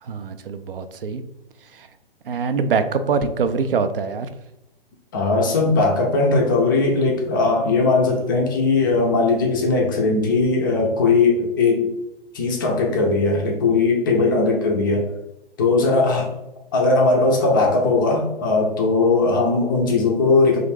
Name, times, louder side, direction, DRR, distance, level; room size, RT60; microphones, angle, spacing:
voice 1, 0.0-1.2 1.7-1.9 2.3-4.3, right 5 dB, 65° right, 10 dB, 0.4 m, -24 dB
voice 2, 5.1-11.9 12.3-15.1 15.6-16.3 16.7-20.6, left 3 dB, 20° left, 0 dB, 0.4 m, -19 dB
3.2 x 2.5 x 3.2 m, 0.87 s
figure-of-eight pair, 125°, 30 cm